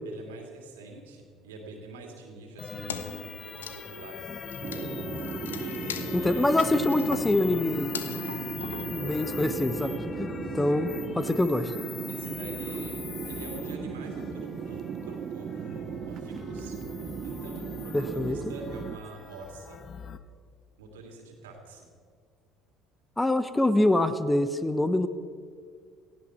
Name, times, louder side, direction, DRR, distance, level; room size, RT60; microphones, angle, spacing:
voice 1, 0.0-4.2 5.6-6.9 12.1-16.8 17.2-19.8 20.8-21.9, right 2 dB, 80° right, 2 dB, 2.7 m, -45 dB
sound 1, 2.6-20.2, left 6 dB, 45° left, 0.9 m, -39 dB
Wood, 2.9-9.6, left 7 dB, 85° left, 0.7 m, -42 dB
sound 2, 4.6-19.0, right 9 dB, 50° right, 0.7 m, -37 dB
voice 2, 6.1-8.0 8.9-10.3 10.5-11.7 17.9-18.4 23.2-25.1, left 1 dB, 10° left, 12 dB, 1.0 m, -25 dB
18.0 x 15.5 x 4.5 m, 2.1 s
hypercardioid pair, 60°, 0 cm